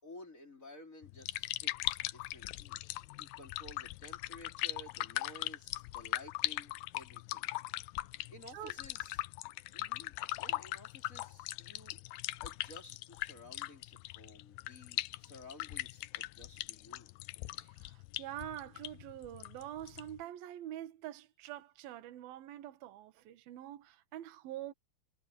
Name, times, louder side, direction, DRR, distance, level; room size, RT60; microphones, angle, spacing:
voice 1, 0.0-2.8 3.2-7.5 8.3-9.3 9.7-12.0 12.4-17.1, left 1 dB, 20° left, 4.9 m, -54 dB
sound 1, 1.0-20.2, left 18 dB, 85° left, 2.2 m, -40 dB
voice 2, 17.6-24.7, right 12 dB, 65° right, 3.2 m, -45 dB
omnidirectional pair, 4.7 m